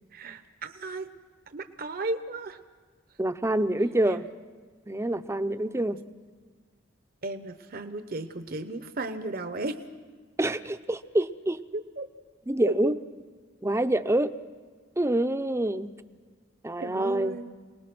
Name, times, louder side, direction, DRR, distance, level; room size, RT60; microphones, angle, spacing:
voice 1, 0.1-1.1 1.5-2.6 4.0-4.2 7.2-9.8 11.7-12.1 12.6-12.9 16.8-17.5, right 2 dB, 50° right, 9 dB, 0.9 m, -34 dB
voice 2, 3.2-4.3 4.9-6.0 10.4-11.6 12.5-12.9 13.6-14.3 15.0-15.9 16.6-17.4, right 1 dB, 15° right, 10 dB, 0.7 m, -26 dB
28.5 x 19.5 x 6.1 m, 1.5 s
head